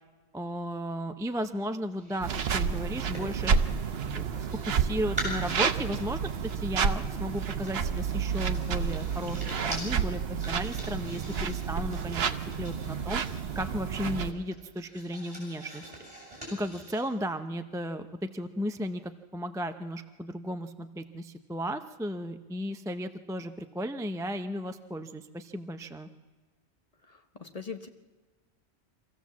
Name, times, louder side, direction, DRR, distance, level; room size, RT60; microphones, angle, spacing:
voice 1, 0.3-3.6 4.1-4.3 4.7-12.2 12.6-13.2 13.5-15.9 16.5-26.1, equal, 5° right, 8 dB, 0.4 m, -35 dB
sound 1, 2.0-4.8 5.1-17.0, right 1 dB, 35° right, 7.3 m, -44 dB
sound 2, 2.2-14.3, right 6 dB, 70° right, 1.0 m, -30 dB
voice 2, 27.1-27.9, left 5 dB, 35° left, 7 dB, 0.9 m, -41 dB
25.0 x 15.0 x 7.3 m, 1.4 s
omnidirectional pair, 1.1 m